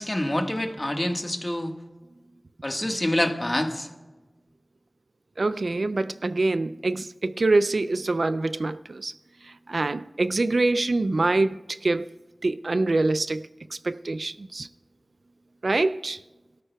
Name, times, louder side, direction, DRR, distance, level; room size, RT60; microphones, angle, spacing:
voice 1, 0.0-1.7 2.6-3.9, left 1 dB, 30° left, 1.4 m, -26 dB
voice 2, 5.4-9.1 9.4-12.1 12.4-14.7 15.6-16.2, right 2 dB, 75° right, 0.3 m, -25 dB
23.0 x 13.0 x 2.3 m
wide cardioid pair, 45°, 0 cm